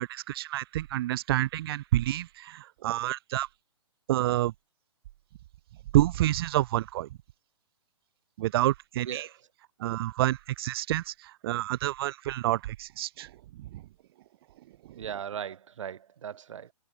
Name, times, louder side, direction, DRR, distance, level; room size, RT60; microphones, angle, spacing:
voice 1, 0.0-3.5 4.1-4.5 5.9-7.1 8.4-9.3 9.8-13.3 13.7-13.8, right 15 dB, 40° right, 1.2 m, -28 dB
voice 2, 14.9-16.7, right 8 dB, 60° right, 4.5 m, -38 dB
figure-of-eight pair, 125°, 18 cm